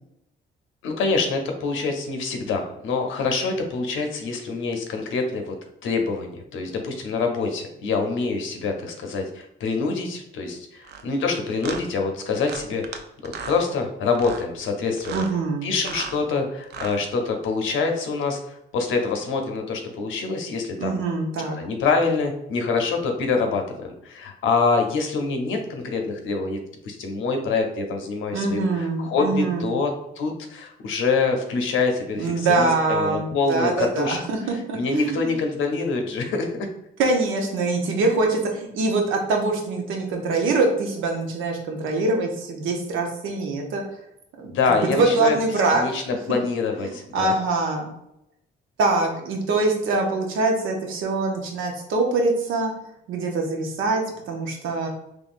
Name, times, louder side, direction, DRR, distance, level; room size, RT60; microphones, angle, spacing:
voice 1, 0.8-5.5 5.8-15.3 15.6-21.0 21.6-26.6 26.8-34.2 34.7-36.7 44.4-45.4 45.7-47.3, left 4 dB, 80° left, 4 dB, 0.7 m, -25 dB
sound 1, 10.8-11.0 11.6-11.8 12.4-13.0 13.2-13.6 14.1-14.5 15.0-15.3 15.7-16.2 16.6-17.0, right 6 dB, 60° right, 0.5 m, -35 dB
voice 2, 15.1-15.7 20.8-21.6 28.3-29.7 32.2-35.4 37.0-43.8 44.4-45.8 46.3-46.4 46.8-47.9 48.8-52.7 53.1-54.9, right 3 dB, 85° right, 2 dB, 0.8 m, -24 dB
3.6 x 3.2 x 2.5 m, 0.81 s
cardioid pair, 90°, 20 cm